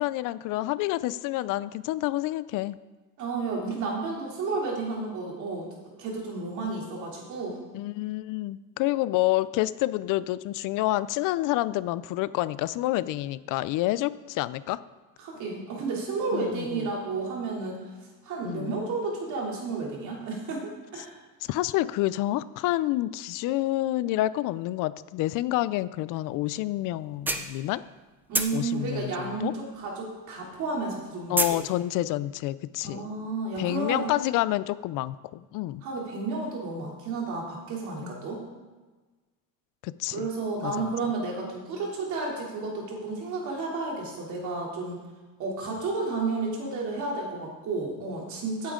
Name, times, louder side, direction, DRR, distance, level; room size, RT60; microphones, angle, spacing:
voice 1, 0.0-2.8 7.7-14.8 16.3-16.9 18.4-18.8 21.4-27.8 28.5-29.5 31.3-33.1 33.6-35.8 38.0-38.1 39.8-40.3 40.6-40.9, left 16 dB, 65° left, 17 dB, 0.5 m, -28 dB
voice 2, 3.2-7.6 15.2-17.8 18.2-21.1 28.3-31.7 32.8-34.1 35.8-38.4 40.1-45.0 45.4-48.7, right 3 dB, 55° right, -2 dB, 3.1 m, -32 dB
sound 1, 26.4-26.5 27.0-28.0 28.3-30.2 30.4-31.6, right 2 dB, 5° right, 0.5 m, -28 dB
16.0 x 8.7 x 3.7 m, 1.3 s
cardioid pair, 165°, 35 cm